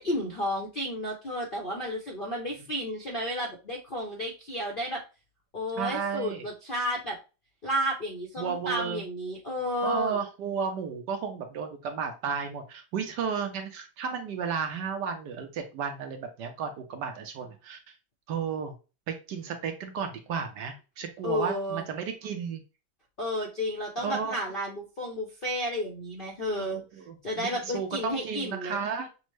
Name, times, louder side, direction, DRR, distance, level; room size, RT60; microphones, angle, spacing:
voice 1, 0.0-5.0 5.5-7.2 7.6-10.2 21.2-21.8 23.2-26.8 27.2-28.8, equal, 50° left, -2 dB, 0.6 m, -32 dB
voice 2, 5.8-6.5 8.4-9.0 9.8-17.8 18.3-18.7 19.1-22.6 24.0-24.4 26.6-29.1, right 6 dB, 70° right, 5 dB, 1.2 m, -33 dB
6.1 x 2.2 x 3.1 m, 0.31 s
omnidirectional pair, 2.1 m